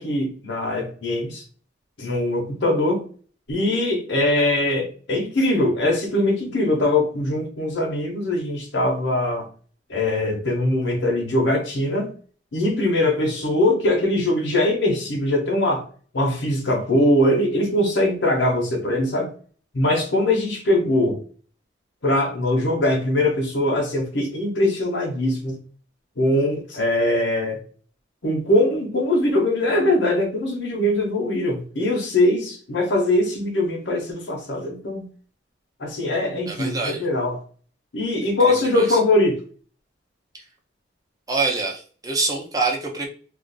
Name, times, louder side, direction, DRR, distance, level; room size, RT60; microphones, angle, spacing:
voice 1, 0.0-1.4 2.0-3.0 3.5-9.5 9.9-12.1 12.5-15.8 16.1-19.3 19.7-21.2 22.0-25.6 26.2-27.6 28.2-35.1 35.8-37.4 37.9-39.4, left 1 dB, 85° left, 0 dB, 0.9 m, -21 dB
voice 2, 36.5-37.1 38.7-39.0 40.3-40.4 41.3-43.1, right 3 dB, 20° right, 0 dB, 0.7 m, -25 dB
2.5 x 2.4 x 3.9 m, 0.41 s
head